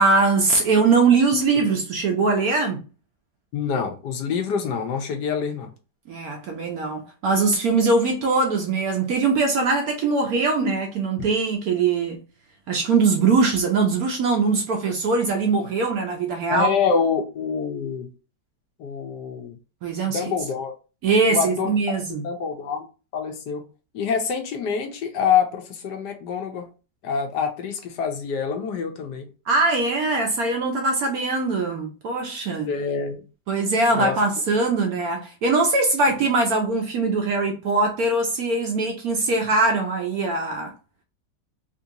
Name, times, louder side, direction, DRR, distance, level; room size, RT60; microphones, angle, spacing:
voice 1, 0.0-2.8 6.1-12.2 12.7-16.7 19.8-20.2 21.0-22.3 29.5-32.7 33.5-40.7, right 3 dB, 70° right, 0.9 m, -21 dB
voice 2, 3.5-5.7 16.5-18.1 18.8-19.5 20.1-20.7 21.3-21.7 22.2-22.9 23.1-23.6 23.9-26.7 27.0-29.2 32.7-33.2 33.9-34.2, left 6 dB, 70° left, 1.2 m, -26 dB
3.7 x 2.6 x 2.7 m
omnidirectional pair, 2.0 m